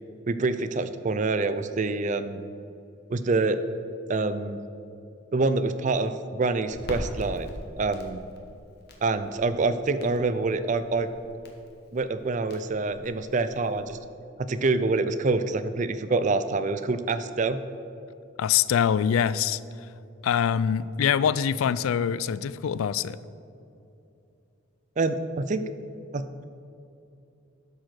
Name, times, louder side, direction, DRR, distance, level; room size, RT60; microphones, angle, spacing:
voice 1, 0.3-2.4 3.1-3.6 4.1-4.6 5.3-7.5 7.8-8.2 9.0-11.1 11.9-14.0 14.4-17.6 25.0-25.6 26.1-26.4, right 3 dB, 35° right, 11 dB, 0.4 m, -26 dB
Crackle, 6.7-14.0, equal, 50° left, 1.3 m, -43 dB
voice 2, 18.4-19.6 20.2-23.2, left 8 dB, 80° left, 17 dB, 0.3 m, -24 dB
11.5 x 4.8 x 6.0 m, 2.7 s
head